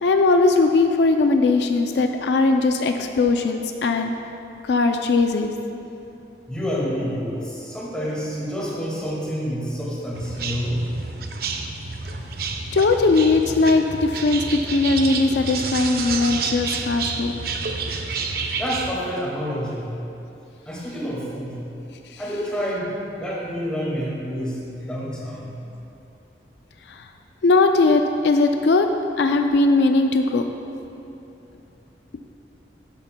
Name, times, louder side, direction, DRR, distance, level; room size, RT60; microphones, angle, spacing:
voice 1, 0.0-4.1 4.6-5.5 12.7-17.3 22.1-22.2 26.9-27.0 27.4-28.9 29.2-30.4, left 3 dB, 70° left, 5 dB, 0.4 m, -19 dB
voice 2, 6.5-10.8 18.6-20.0 20.7-21.7 22.2-25.6, equal, 5° left, -6 dB, 1.9 m, -28 dB
sound 1, 10.1-18.9, right 4 dB, 55° right, 0.6 m, -29 dB
12.5 x 9.8 x 2.2 m, 2.9 s
head